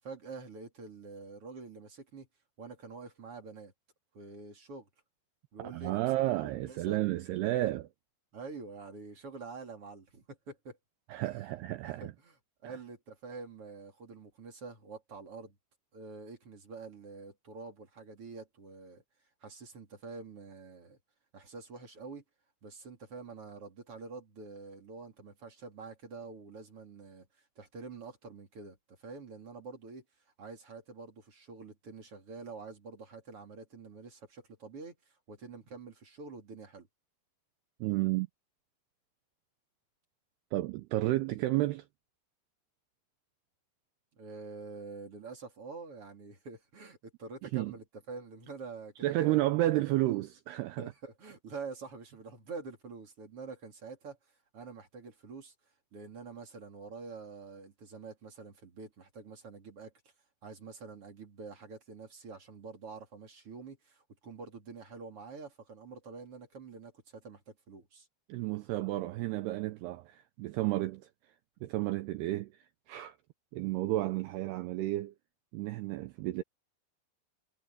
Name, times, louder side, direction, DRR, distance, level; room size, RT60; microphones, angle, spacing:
voice 1, 0.0-2.3 2.6-3.7 4.1-4.9 5.5-7.0 8.3-10.8 11.2-11.4 11.8-12.4 12.6-15.6 15.9-19.0 19.4-21.0 21.3-22.2 22.6-30.0 30.4-36.9 44.2-49.3 50.8-54.2 54.5-55.5 55.9-59.9 60.4-68.1, right 4 dB, 35° right, 3.4 m, -47 dB
voice 2, 5.6-7.9 11.1-12.1 12.6-12.8 37.8-38.3 40.5-41.8 47.4-47.7 49.0-50.9 68.3-71.1 71.6-72.6 72.9-73.2 73.5-75.1 75.5-76.4, right 16 dB, 85° right, 2.3 m, -32 dB
omnidirectional pair, 5.5 m